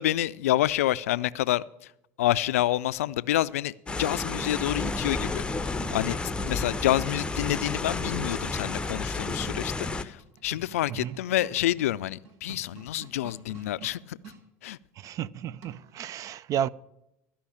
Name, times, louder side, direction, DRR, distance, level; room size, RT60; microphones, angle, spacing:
voice 1, 0.0-1.6 2.2-14.2 14.6-14.8, left 14 dB, 85° left, 0.4 m, -28 dB
sound 1, 3.9-10.0, left 3 dB, 15° left, 0.7 m, -31 dB
sound 2, 10.1-14.4 15.6-16.0, right 3 dB, 70° right, 1.4 m, -49 dB
voice 2, 15.0-16.7, right 10 dB, 50° right, 0.4 m, -32 dB
13.0 x 5.6 x 8.5 m
hypercardioid pair, 85°, 8 cm